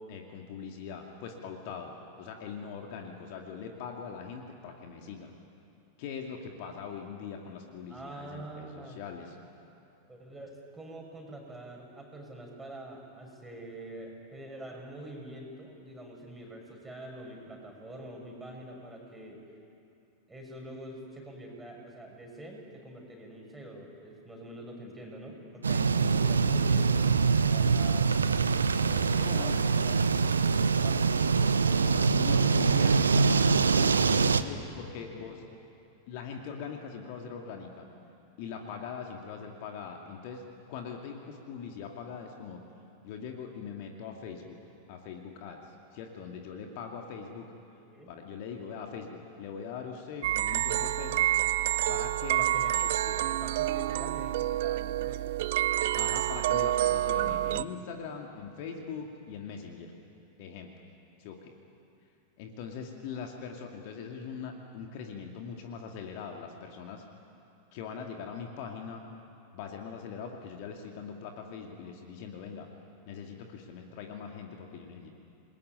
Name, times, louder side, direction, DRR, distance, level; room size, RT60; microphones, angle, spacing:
voice 1, 0.1-5.3 6.0-9.4 29.2-29.6 31.8-35.4 36.1-37.9 38.4-40.4 40.7-42.6 43.0-44.6 44.9-45.6 45.9-47.5 48.1-51.3 51.9-52.4 53.0-53.2 55.9-59.9 60.4-60.7 61.2-61.5 62.4-67.0 67.7-69.0 69.5-72.7 73.1-75.2, left 6 dB, 45° left, 2 dB, 2.4 m, -41 dB
voice 2, 7.9-9.0 10.1-19.4 20.3-28.1 28.7-31.2 35.1-35.3 47.8-48.1 52.3-52.8 53.1-55.3, right 1 dB, 10° right, 0 dB, 6.4 m, -45 dB
sound 1, 25.6-34.4, right 5 dB, 75° right, 0.9 m, -24 dB
sound 2, 50.2-57.6, right 14 dB, 55° right, 0.6 m, -28 dB
28.5 x 20.5 x 9.4 m, 2.7 s
figure-of-eight pair, 90°, 0 cm